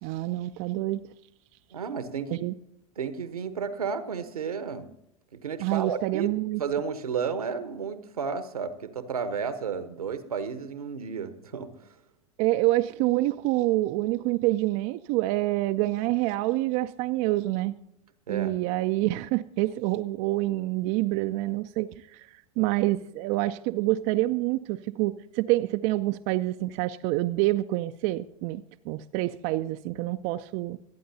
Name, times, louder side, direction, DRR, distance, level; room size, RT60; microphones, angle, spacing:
voice 1, 0.0-1.0 2.3-2.5 5.6-6.6 12.4-17.7 18.3-22.3 22.6-30.8, right 17 dB, 45° right, 9 dB, 0.5 m, -27 dB
voice 2, 1.7-2.4 3.0-4.9 5.3-6.3 6.6-11.7 18.3-18.5, right 6 dB, 80° right, 11 dB, 1.1 m, -32 dB
25.0 x 9.3 x 2.8 m, 0.80 s
figure-of-eight pair, 90°, 19 cm